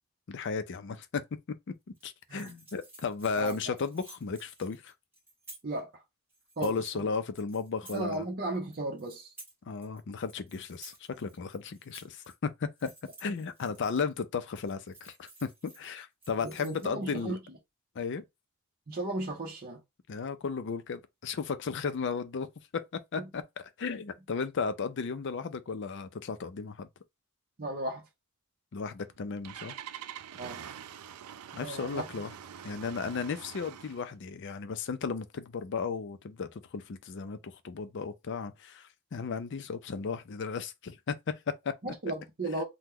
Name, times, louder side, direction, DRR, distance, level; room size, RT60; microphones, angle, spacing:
voice 1, 0.3-1.2 2.0-4.9 6.6-8.2 9.7-12.9 13.2-17.3 18.0-18.2 20.1-22.5 22.7-26.9 28.7-29.8 31.5-32.3 32.6-41.7, left 5 dB, 55° left, 0.4 m, -35 dB
sound 1, 1.9-5.8 6.3-7.0 7.3-8.2 8.5-10.0 10.2-12.3 12.8-14.2 14.5-15.9 16.2-17.2, right 2 dB, 10° right, 1.6 m, -53 dB
voice 2, 3.4-3.8 5.6-6.0 6.6-7.1 7.9-9.3 16.4-17.4 18.9-19.8 23.2-23.3 27.6-28.0 30.3-30.6 31.6-32.1 41.8-42.6, right 2 dB, 40° right, 0.7 m, -35 dB
Engine starting, 29.0-34.1, right 9 dB, 90° right, 0.4 m, -45 dB
2.9 x 2.1 x 3.6 m
head